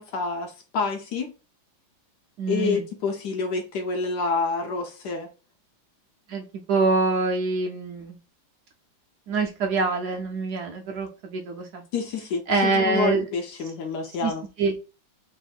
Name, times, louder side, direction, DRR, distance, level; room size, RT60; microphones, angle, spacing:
voice 1, 0.0-1.3 2.5-5.3 11.9-14.4, left 4 dB, 70° left, 1.2 m, -28 dB
voice 2, 2.4-2.8 6.3-8.2 9.3-11.8 12.5-13.2 14.2-14.3 14.6-14.8, right 3 dB, 70° right, 1.0 m, -25 dB
3.4 x 2.6 x 3.9 m
omnidirectional pair, 2.1 m